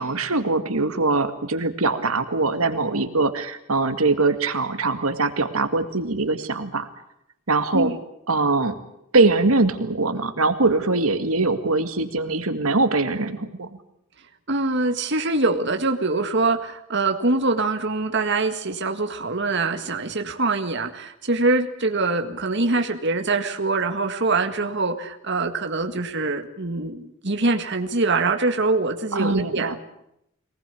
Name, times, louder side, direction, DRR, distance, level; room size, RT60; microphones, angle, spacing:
voice 1, 0.0-6.9 7.5-7.9 8.3-8.8 9.1-13.7 29.1-29.8, right 3 dB, 85° right, 8 dB, 2.1 m, -22 dB
voice 2, 14.5-29.8, right 3 dB, 55° right, 4 dB, 1.9 m, -24 dB
23.5 x 19.5 x 8.4 m, 0.79 s
head